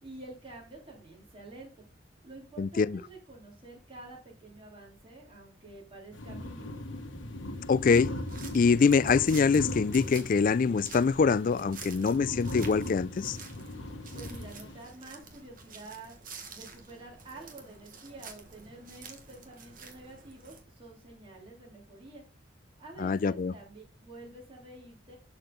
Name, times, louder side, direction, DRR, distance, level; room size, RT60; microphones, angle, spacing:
voice 1, 0.0-1.8 2.2-6.8 14.1-16.2 16.5-22.2 22.8-25.2, right 2 dB, 30° right, 3.0 m, -48 dB
voice 2, 2.6-3.0 7.7-8.1 8.5-13.4 23.0-23.5, left 5 dB, 45° left, 0.3 m, -24 dB
sound 1, 6.1-14.9, left 1 dB, 80° left, 1.2 m, -39 dB
sound 2, 7.8-20.6, right 5 dB, 45° right, 1.5 m, -49 dB
11.5 x 4.5 x 3.8 m
head